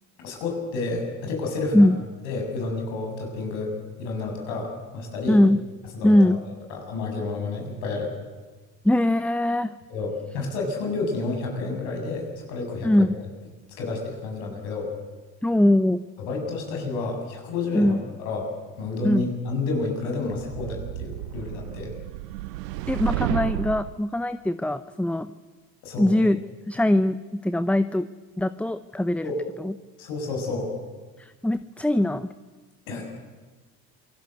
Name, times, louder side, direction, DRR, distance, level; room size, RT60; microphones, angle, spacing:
voice 1, 0.2-1.9 2.2-3.7 4.0-5.4 5.9-6.1 6.7-8.1 9.9-13.1 13.8-14.9 16.2-21.9 25.8-26.2 29.2-29.4 30.0-30.7 32.9-33.0, left 3 dB, 70° left, 2 dB, 7.9 m, -30 dB
voice 2, 5.3-5.6 6.0-6.4 8.8-9.8 12.8-13.2 15.4-16.1 17.7-18.0 19.0-19.3 22.9-25.3 26.0-26.4 26.7-28.1 28.4-29.3 29.6-29.7 31.2-32.3, left 1 dB, 5° left, 13 dB, 0.7 m, -21 dB
sound 1, 20.3-24.0, right 17 dB, 85° right, 0.7 m, -32 dB
27.0 x 19.0 x 8.1 m, 1.3 s
hypercardioid pair, 65°, 48 cm